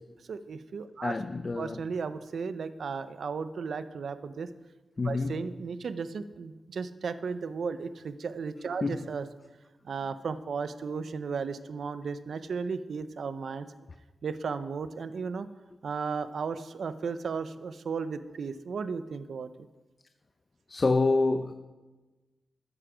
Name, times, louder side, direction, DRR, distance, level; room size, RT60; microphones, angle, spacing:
voice 1, 0.3-1.2 1.6-4.5 5.0-9.3 9.8-13.7 14.2-15.5 15.8-19.5, right 5 dB, 70° right, 12 dB, 0.6 m, -35 dB
voice 2, 1.0-1.8 5.0-5.3 8.8-9.0 20.7-21.5, left 3 dB, 35° left, 9 dB, 0.5 m, -27 dB
14.0 x 9.6 x 5.0 m, 1.2 s
wide cardioid pair, 100°, 0 cm